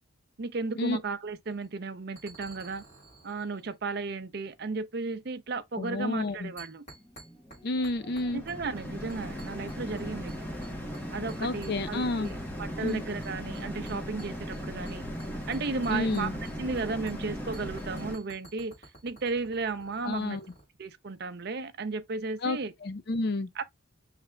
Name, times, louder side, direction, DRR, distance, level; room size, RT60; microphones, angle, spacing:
voice 1, 0.4-2.8 3.2-6.9 8.3-10.5 11.1-12.3 12.6-15.0 15.5-18.7 19.0-20.4 20.8-22.7 23.6-23.7, right 4 dB, 50° right, 0.5 m, -34 dB
sound 1, 1.4-1.7 2.2-3.8 6.6-7.6 7.8-8.8 9.1-10.0 10.3-11.0 11.3-12.6 12.9-16.8 17.1-17.2 17.5-20.6, right 2 dB, 35° left, 2.9 m, -51 dB
voice 2, 5.8-6.5 7.6-8.4 11.4-12.3 12.8-13.0 15.9-16.3 20.0-20.4 22.4-23.6, left 2 dB, 50° left, 0.5 m, -30 dB
sound 2, 6.9-18.2, equal, 10° left, 0.9 m, -38 dB
6.0 x 3.3 x 2.2 m
head